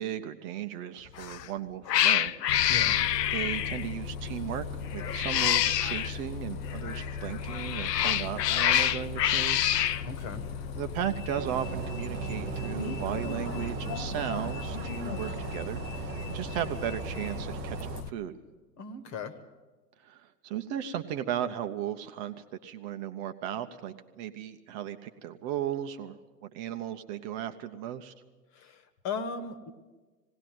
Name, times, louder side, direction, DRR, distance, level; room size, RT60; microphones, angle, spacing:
voice 1, 0.0-2.8 3.3-4.6 4.9-9.8 10.7-18.3 20.0-22.4 22.6-28.1, right 10 dB, 35° right, 8 dB, 0.9 m, -36 dB
Cat, 1.2-1.5 1.9-3.9 5.0-6.1 7.4-10.0, left 11 dB, 75° left, 0.6 m, -26 dB
Bus, 2.5-18.1, left 6 dB, 55° left, 1.1 m, -38 dB
voice 2, 2.7-3.0 10.0-10.4 18.8-19.3 28.5-29.7, left 5 dB, 35° left, 12 dB, 1.6 m, -37 dB
sound 1, 11.3-18.0, right 9 dB, 80° right, 0.8 m, -38 dB
19.0 x 17.5 x 7.7 m, 1.3 s
figure-of-eight pair, 105°, 50 cm